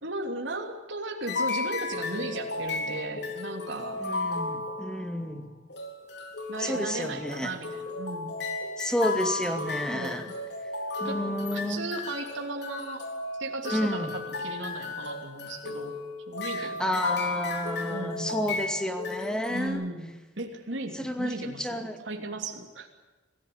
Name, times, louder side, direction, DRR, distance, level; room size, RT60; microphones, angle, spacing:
voice 1, 0.0-4.0 6.5-8.4 9.9-10.3 11.0-11.2 11.5-13.0 13.4-16.0 16.3-17.2 17.9-18.5 19.5-20.1 20.4-22.9, right 2 dB, 80° right, 3 dB, 3.1 m, -36 dB
sound 1, 1.3-5.3 5.7-19.7, left 3 dB, 65° left, 4.1 m, -34 dB
voice 2, 4.0-5.5 6.6-7.5 8.8-10.3 11.0-11.9 13.7-14.1 16.6-19.8 20.9-22.0, equal, 5° left, 6 dB, 2.3 m, -31 dB
26.0 x 15.5 x 9.5 m, 1.2 s
head